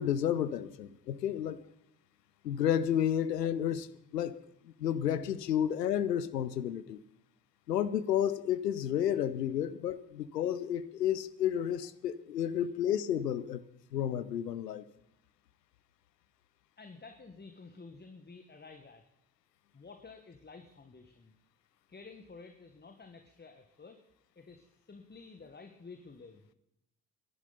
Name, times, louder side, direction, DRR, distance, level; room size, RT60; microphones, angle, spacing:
voice 1, 0.0-1.6 2.4-4.4 4.8-7.0 7.7-13.6 13.9-14.8, left 10 dB, 80° left, 14 dB, 0.8 m, -31 dB
voice 2, 16.8-19.0 19.7-21.4 21.9-24.0 24.3-26.5, left 4 dB, 20° left, 6 dB, 1.6 m, -51 dB
28.0 x 11.5 x 4.0 m, 0.81 s
figure-of-eight pair, 45°, 48 cm